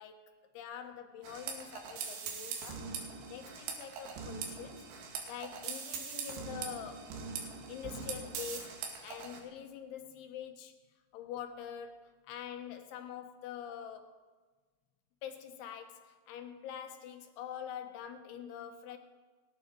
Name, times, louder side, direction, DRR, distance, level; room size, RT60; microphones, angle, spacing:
voice 1, 0.0-2.8 3.3-7.1 7.7-8.8 9.0-10.7 11.1-14.2 15.2-19.0, left 9 dB, 85° left, 6 dB, 3.7 m, -45 dB
sound 1, 1.2-9.4, right 5 dB, 80° right, 4.2 m, -42 dB
29.5 x 10.5 x 4.5 m, 1.4 s
omnidirectional pair, 5.3 m